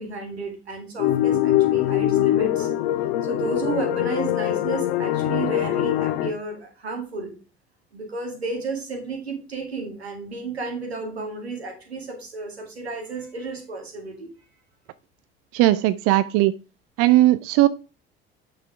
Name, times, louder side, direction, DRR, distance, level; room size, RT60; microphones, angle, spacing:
voice 1, 0.0-2.7 3.2-7.3 7.9-14.3, right 3 dB, 80° right, 2.3 m, -32 dB
sound 1, 1.0-6.3, left 13 dB, 60° left, 0.9 m, -22 dB
voice 2, 15.5-16.5 17.0-17.7, right 16 dB, 50° right, 0.5 m, -18 dB
9.0 x 6.3 x 3.5 m
figure-of-eight pair, 60°, 31 cm